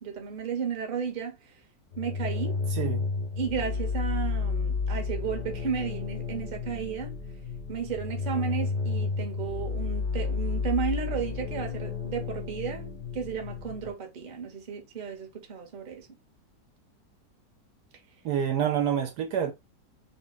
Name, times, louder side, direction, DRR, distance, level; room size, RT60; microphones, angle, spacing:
voice 1, 0.0-1.5 2.0-2.6 3.4-7.1 7.7-16.1, right 6 dB, 40° right, 0.8 m, -33 dB
sound 1, 1.9-13.9, left 4 dB, 85° left, 0.3 m, -31 dB
voice 2, 18.2-19.5, right 9 dB, 70° right, 1.1 m, -27 dB
3.6 x 2.1 x 3.9 m
omnidirectional pair, 1.9 m